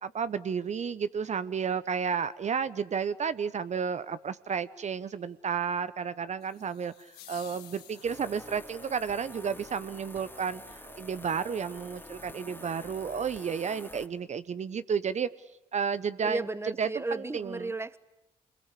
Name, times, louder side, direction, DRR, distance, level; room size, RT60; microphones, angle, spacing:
voice 1, 0.0-15.3 15.7-16.4 16.8-17.7, right 6 dB, 45° right, 14 dB, 0.9 m, -32 dB
sound 1, 6.4-8.6, left 12 dB, 75° left, 1.6 m, -52 dB
sound 2, 7.3-13.3, right 8 dB, 80° right, 1.6 m, -56 dB
sound 3, 8.0-14.1, left 2 dB, 10° left, 2.3 m, -47 dB
voice 2, 16.2-18.0, right 2 dB, 15° right, 16 dB, 1.1 m, -34 dB
26.0 x 22.0 x 8.4 m, 0.91 s
hypercardioid pair, 50°, 17 cm